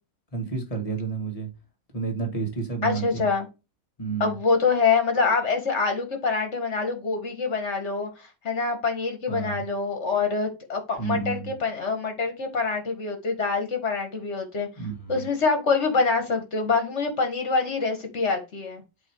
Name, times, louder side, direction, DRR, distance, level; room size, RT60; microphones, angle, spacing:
voice 1, 0.3-1.5 1.9-3.3 4.0-4.4 9.3-9.6 11.0-11.5 14.8-15.3, right 5 dB, 30° left, 1.9 m, -30 dB
voice 2, 2.8-3.5 4.2-8.1 8.4-14.7 15.1-18.8, left 4 dB, 65° left, 2.1 m, -25 dB
7.8 x 3.1 x 4.7 m
omnidirectional pair, 1.3 m